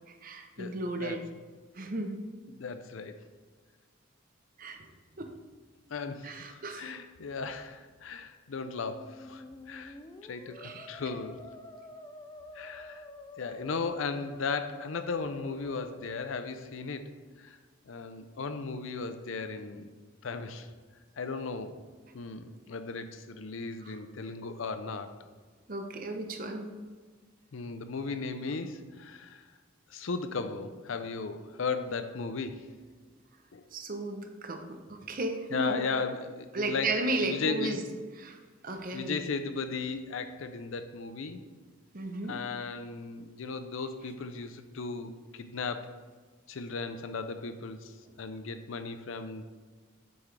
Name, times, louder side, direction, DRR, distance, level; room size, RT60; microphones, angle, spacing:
voice 1, 0.1-1.2 1.7-2.2 4.6-4.8 5.2-5.3 6.2-6.9 10.5-10.9 23.8-24.0 25.7-26.7 33.7-35.9 36.5-37.8 38.2-38.4 38.6-39.2 41.9-42.4, right 2 dB, 40° right, 5 dB, 0.7 m, -34 dB
voice 2, 0.6-1.2 2.5-3.2 5.9-10.0 10.2-11.4 12.5-13.1 13.4-17.1 17.4-17.6 17.9-19.9 20.2-20.7 21.2-21.8 22.1-25.1 27.5-29.4 29.9-32.7 33.5-33.6 35.5-36.9 37.2-37.8 38.9-41.4 42.3-45.9 46.5-49.4, left 4 dB, 75° left, 9 dB, 0.5 m, -36 dB
Musical instrument, 8.7-16.8, left 2 dB, 20° left, 0.3 m, -49 dB
7.9 x 5.9 x 3.3 m, 1.4 s
head